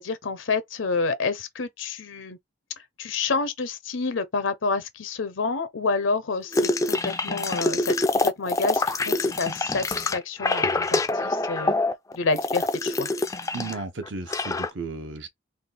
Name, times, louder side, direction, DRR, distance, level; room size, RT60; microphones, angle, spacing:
voice 1, 0.0-2.4 2.8-11.8 12.1-13.1, left 4 dB, 75° left, 0.7 m, -29 dB
sound 1, 6.5-13.8 14.1-14.7, left 2 dB, 15° left, 0.3 m, -25 dB
voice 2, 13.5-15.3, right 3 dB, 65° right, 0.8 m, -34 dB
3.4 x 2.4 x 3.8 m
head